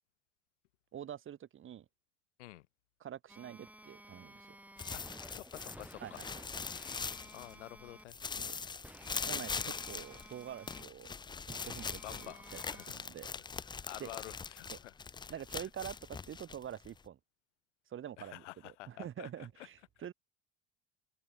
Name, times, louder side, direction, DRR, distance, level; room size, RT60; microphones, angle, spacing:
voice 1, 0.9-1.8 3.0-4.6 6.0-6.4 8.4-8.6 9.1-11.1 11.5-13.3 14.0-14.1 14.7-14.8 15.3-17.2 17.9-20.1, right 10 dB, 35° right, 1.1 m, -46 dB
sound 1, 3.3-8.0 8.8-10.8 11.5-12.9, right 1 dB, 5° right, 7.0 m, -54 dB
sound 2, 4.8-7.8 8.1-17.1, left 5 dB, 15° left, 0.5 m, -42 dB
voice 2, 4.9-6.2 7.3-8.2 9.7-9.8 12.0-13.1 13.9-14.9 18.2-19.7, left 17 dB, 75° left, 0.9 m, -49 dB
figure-of-eight pair, 65°, 36 cm